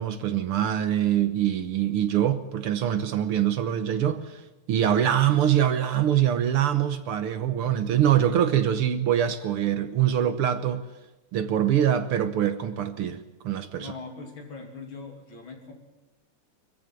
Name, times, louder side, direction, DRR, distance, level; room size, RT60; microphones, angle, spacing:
voice 1, 0.0-4.4 4.7-10.8 11.3-13.9, right 10 dB, 65° right, 1.5 m, -24 dB
voice 2, 13.8-15.7, left 4 dB, 40° left, 3.4 m, -41 dB
21.5 x 15.0 x 9.0 m
omnidirectional pair, 3.4 m